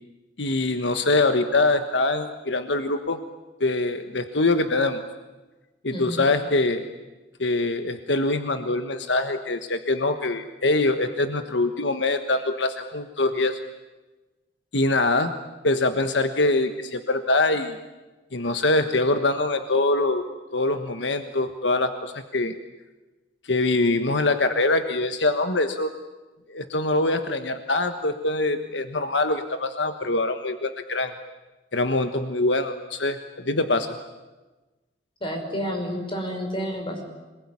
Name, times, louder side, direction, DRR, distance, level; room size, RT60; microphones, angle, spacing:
voice 1, 0.4-3.2 3.6-5.0 5.8-6.8 7.4-13.6 14.7-15.3 15.6-17.8 18.3-20.3 20.5-22.5 23.4-25.9 26.5-31.1 31.7-34.0, left 2 dB, 80° left, 8 dB, 1.4 m, -24 dB
voice 2, 5.9-6.3 35.2-37.0, equal, 30° left, 3 dB, 5.5 m, -30 dB
26.5 x 20.5 x 9.9 m, 1.2 s
head